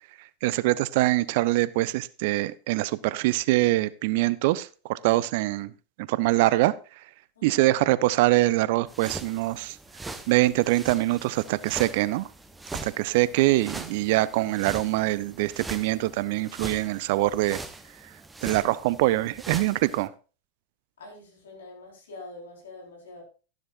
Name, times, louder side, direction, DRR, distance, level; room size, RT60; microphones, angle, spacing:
voice 1, 0.4-5.7 6.0-6.7 7.4-9.8 10.3-12.3 12.8-17.6 18.4-20.1, right 18 dB, 50° right, 0.5 m, -24 dB
voice 2, 7.4-7.9 21.0-23.2, left 2 dB, 65° left, 4.6 m, -45 dB
sound 1, 8.9-20.1, right 2 dB, 10° right, 1.0 m, -41 dB
13.5 x 11.5 x 2.6 m
figure-of-eight pair, 90°, 0 cm